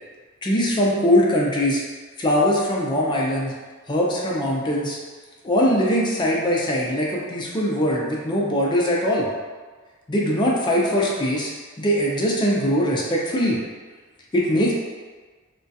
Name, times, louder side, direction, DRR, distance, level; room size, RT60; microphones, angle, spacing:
voice 1, 0.4-1.8 2.2-3.5 3.9-5.0 5.4-9.3 10.1-11.5 11.8-13.6 14.3-14.7, equal, 20° left, -4 dB, 0.4 m, -21 dB
2.3 x 2.2 x 2.6 m, 1.4 s
head